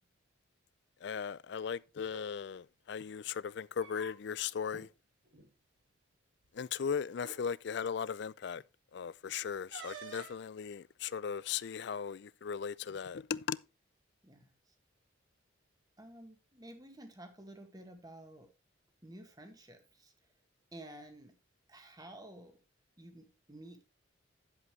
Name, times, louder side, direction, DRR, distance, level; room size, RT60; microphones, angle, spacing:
voice 1, 1.0-4.9 6.5-8.6 8.9-13.6, left 7 dB, 55° left, 0.4 m, -37 dB
sound 1, 2.0-2.3 3.5-4.4 4.7-4.9 5.2-5.5 6.4-6.5 7.2-7.4 9.7-10.4, right 4 dB, 65° right, 2.9 m, -49 dB
voice 2, 14.2-14.7 16.0-18.5 19.0-20.1 20.7-21.3 21.7-22.6 23.0-23.8, right 1 dB, 20° right, 1.7 m, -52 dB
11.0 x 7.7 x 3.2 m
head